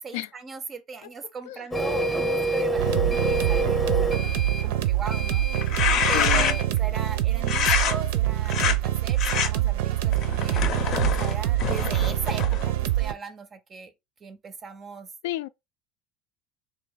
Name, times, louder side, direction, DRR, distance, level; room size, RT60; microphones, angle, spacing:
voice 1, 0.0-5.5 6.1-10.7 11.0-13.9 14.2-15.1, right 5 dB, 25° right, 0.4 m, -39 dB
Printer, 1.7-6.7, right 1 dB, 10° left, 0.7 m, -28 dB
sound 1, 2.8-13.1, right 13 dB, 80° right, 0.5 m, -25 dB
sound 2, 5.6-6.8 7.5-7.9 8.5-8.8 9.2-9.5 10.1-12.7, left 7 dB, 45° left, 0.6 m, -26 dB
voice 2, 6.1-6.6 15.2-15.5, left 15 dB, 85° left, 0.3 m, -30 dB
3.4 x 2.6 x 3.8 m
supercardioid pair, 145°, 0 cm